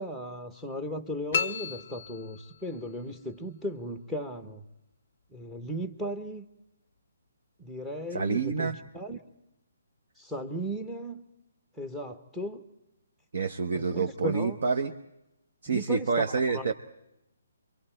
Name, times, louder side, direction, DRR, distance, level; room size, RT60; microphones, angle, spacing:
voice 1, 0.0-4.6 5.3-6.4 7.6-9.2 10.2-11.2 11.8-12.6 13.7-14.6 15.7-16.2 16.5-16.7, equal, 5° right, 8 dB, 0.9 m, -36 dB
sound 1, 1.3-2.9, left 6 dB, 35° left, 0.7 m, -33 dB
voice 2, 8.1-8.8 13.3-14.9 15.6-16.7, right 5 dB, 50° right, 6 dB, 1.0 m, -27 dB
29.0 x 23.5 x 4.4 m, 0.89 s
hypercardioid pair, 175°, 0 cm